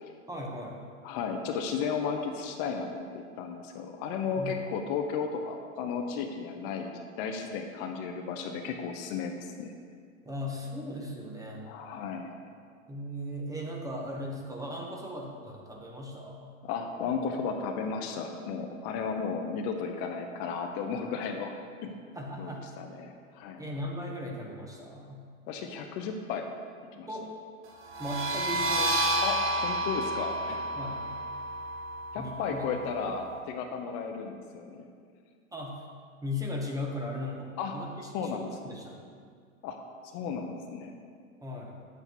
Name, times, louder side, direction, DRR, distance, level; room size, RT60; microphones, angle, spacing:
voice 1, 0.3-0.8 4.4-4.5 10.2-11.7 12.9-16.5 22.1-22.7 23.6-25.2 27.1-27.3 28.0-29.1 30.8-31.0 32.1-32.7 35.5-35.8 36.2-39.1 41.4-41.7, left 1 dB, 10° right, -1 dB, 1.0 m, -37 dB
voice 2, 1.0-9.7 11.7-12.3 16.6-21.5 21.8-21.9 22.4-22.5 22.8-23.6 25.5-26.5 27.0-27.1 29.2-30.6 32.1-34.9 37.6-37.7 38.1-38.5 39.6-39.8 40.1-40.9, left 5 dB, 45° left, 4 dB, 0.8 m, -34 dB
sound 1, 27.9-33.3, right 1 dB, 30° right, 0.9 m, -31 dB
8.9 x 8.1 x 3.0 m, 2.1 s
hypercardioid pair, 105°, 41 cm